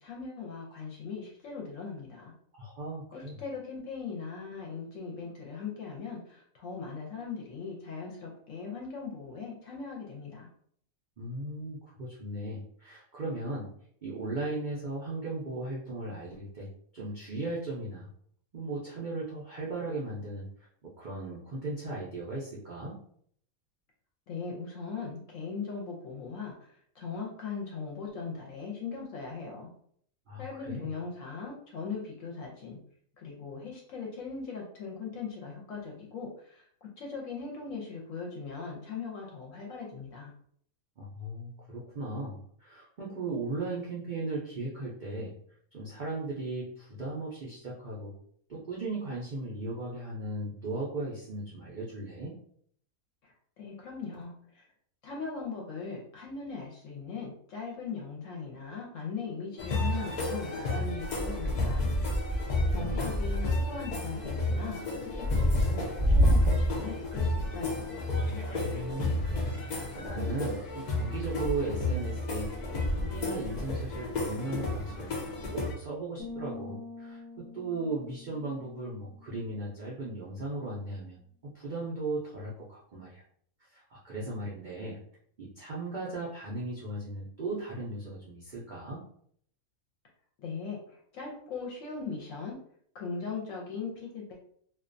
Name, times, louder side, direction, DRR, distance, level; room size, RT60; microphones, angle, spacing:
voice 1, 0.0-2.3 3.1-10.5 24.3-29.7 30.4-32.8 33.2-40.3 53.6-54.7 55.0-61.8 62.7-67.9 90.4-92.6 92.9-94.4, left 5 dB, 70° left, -2 dB, 0.9 m, -39 dB
voice 2, 2.6-3.4 11.2-13.7 14.0-16.7 16.9-18.1 18.5-20.5 20.8-22.9 30.3-30.9 41.0-45.3 45.7-48.1 48.5-52.3 62.8-63.1 68.5-81.2 81.5-83.2 83.7-85.0 85.4-89.0, right 2 dB, 65° right, -6 dB, 0.4 m, -37 dB
sound 1, 59.6-75.7, left 1 dB, 85° left, 0.3 m, -30 dB
sound 2, 76.2-79.9, left 3 dB, 20° left, 0.7 m, -46 dB
2.4 x 2.2 x 2.5 m, 0.63 s
omnidirectional pair, 1.5 m